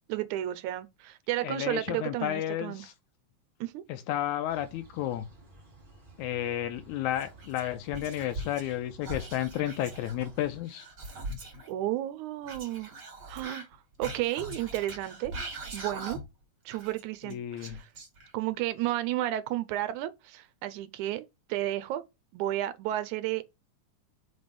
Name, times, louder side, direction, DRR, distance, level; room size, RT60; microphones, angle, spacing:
voice 1, 0.1-2.9 3.6-3.8 11.7-13.0 13.3-13.7 14.0-15.3 15.7-16.2 16.7-17.9 18.3-22.0 22.3-23.5, right 14 dB, 80° right, 1.9 m, -32 dB
voice 2, 1.4-2.9 3.9-5.3 6.2-10.9 17.3-17.8, left 12 dB, 80° left, 1.9 m, -32 dB
sound 1, 4.5-10.6, right 3 dB, 20° right, 1.6 m, -54 dB
Whispering, 7.2-8.8 9.0-11.7 12.4-16.4 16.7-18.5, right 1 dB, 35° right, 2.1 m, -41 dB
5.4 x 3.4 x 5.0 m
omnidirectional pair, 3.7 m